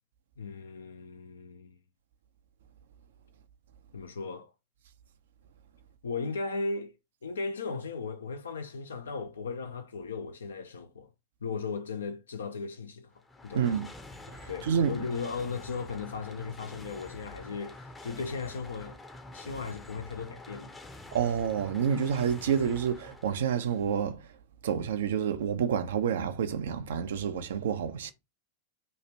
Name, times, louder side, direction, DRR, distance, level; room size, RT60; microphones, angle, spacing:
voice 1, 0.4-1.8 3.9-4.5 6.0-7.0 7.2-11.1 11.4-13.1 13.4-13.9 14.5-19.0 19.3-20.7, left 4 dB, 70° left, 0.4 m, -37 dB
sound 1, 13.1-24.0, left 2 dB, 15° left, 0.6 m, -47 dB
voice 2, 13.5-13.9 14.3-15.0 21.1-24.3 24.6-28.1, right 7 dB, 60° right, 0.5 m, -29 dB
3.0 x 2.4 x 4.2 m
figure-of-eight pair, 90°, 0 cm